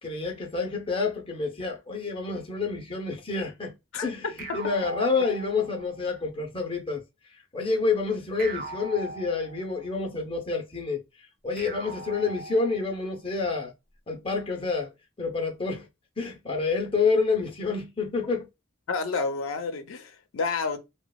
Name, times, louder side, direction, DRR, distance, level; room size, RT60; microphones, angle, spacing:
voice 1, 0.0-3.8 4.0-4.2 4.5-7.0 7.5-11.0 11.4-13.7 14.1-14.9 15.2-15.9 16.2-18.5, left 4 dB, 25° left, 0.6 m, -28 dB
voice 2, 3.9-4.3 18.9-20.8, left 4 dB, 80° left, 0.5 m, -30 dB
sound 1, 4.4-6.0 8.4-10.0 11.6-13.1, right 2 dB, 45° right, 0.4 m, -40 dB
2.9 x 2.1 x 2.2 m
head